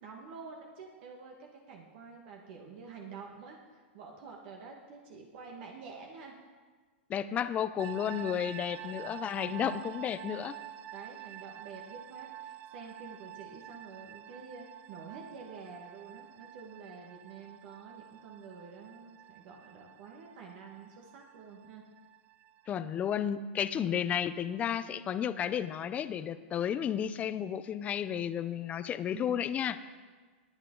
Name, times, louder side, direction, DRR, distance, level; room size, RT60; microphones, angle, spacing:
voice 1, 0.0-6.3 8.8-9.2 10.5-21.8 29.1-29.4, right 5 dB, 55° right, 0 dB, 1.7 m, -48 dB
voice 2, 7.1-10.5 22.7-29.8, left 9 dB, 20° left, 13 dB, 0.5 m, -32 dB
sound 1, 7.8-22.8, right 12 dB, 25° right, 0.4 m, -48 dB
20.5 x 8.2 x 3.9 m, 1.4 s
hypercardioid pair, 140°, 6 cm